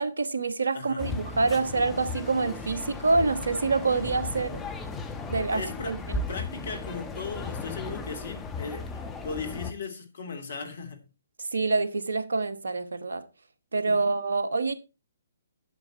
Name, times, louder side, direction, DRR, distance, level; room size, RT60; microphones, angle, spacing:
voice 1, 0.0-4.6 5.3-6.2 11.4-13.2 13.7-14.7, right 3 dB, 75° right, 1.3 m, -26 dB
voice 2, 0.7-1.1 5.5-5.9 6.3-11.0 13.8-14.1, left 4 dB, 60° left, 3.0 m, -37 dB
sound 1, 1.0-9.7, left 3 dB, 15° left, 1.5 m, -36 dB
11.0 x 7.1 x 4.5 m
figure-of-eight pair, 130°, 0 cm